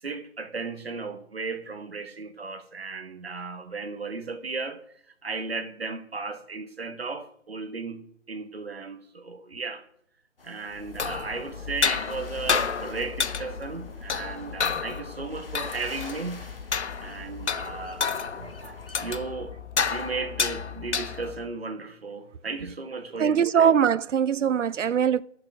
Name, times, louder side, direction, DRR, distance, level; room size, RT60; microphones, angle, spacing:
voice 1, 0.0-4.8 5.2-9.8 10.4-16.5 17.0-19.5 19.9-23.7, right 4 dB, 55° right, 1.4 m, -35 dB
sound 1, 10.4-19.0, left 3 dB, 50° left, 1.5 m, -48 dB
sound 2, 10.8-21.5, left 6 dB, 65° left, 0.7 m, -31 dB
voice 2, 23.2-25.2, right 8 dB, 75° right, 0.6 m, -21 dB
11.5 x 6.7 x 6.1 m
figure-of-eight pair, 175°, 37 cm